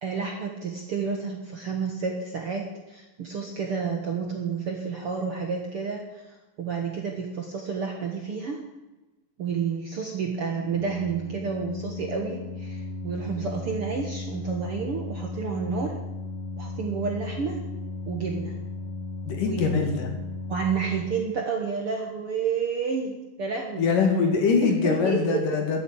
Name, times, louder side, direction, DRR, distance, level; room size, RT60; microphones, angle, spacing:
voice 1, 0.0-2.6 2.9-6.3 6.6-8.6 9.4-16.0 16.6-17.6 18.1-18.5 19.4-19.9 20.5-23.9 24.6-25.4, right 5 dB, 50° right, 1 dB, 1.8 m, -30 dB
Organ, 10.5-21.3, left 3 dB, 35° left, 7.8 m, -36 dB
voice 2, 19.3-20.1 23.8-25.8, left 5 dB, 65° left, 3 dB, 3.6 m, -23 dB
14.0 x 8.6 x 8.8 m, 1.1 s
omnidirectional pair, 4.3 m